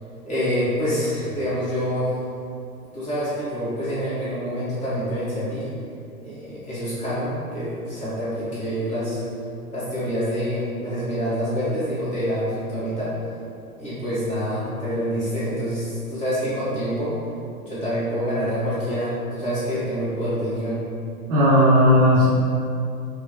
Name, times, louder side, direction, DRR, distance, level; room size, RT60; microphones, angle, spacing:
voice 1, 0.2-2.1 2.9-5.7 6.2-9.2 9.7-13.1 13.8-17.1 17.6-20.8, equal, 15° left, -11 dB, 1.3 m, -26 dB
voice 2, 21.3-22.3, equal, 30° right, -10 dB, 0.9 m, -15 dB
4.7 x 2.2 x 2.9 m, 2.4 s
figure-of-eight pair, 105°, 44 cm